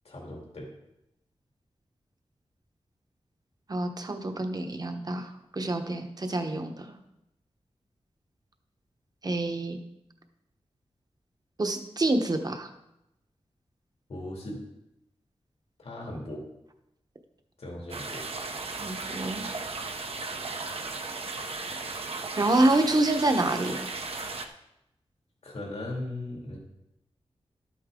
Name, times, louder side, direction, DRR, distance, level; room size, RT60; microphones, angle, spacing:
voice 1, 0.0-0.7 14.1-14.6 15.8-16.5 17.6-18.2 25.4-26.6, left 1 dB, 70° left, -2 dB, 2.5 m, -38 dB
voice 2, 3.7-5.3 5.6-6.7 9.2-9.8 11.6-12.7 18.8-19.4 22.4-23.8, right 2 dB, 35° right, 5 dB, 1.1 m, -26 dB
sound 1, 17.9-24.5, right 3 dB, 65° right, 0.9 m, -36 dB
12.5 x 8.6 x 3.8 m, 0.86 s
wide cardioid pair, 115°, 11 cm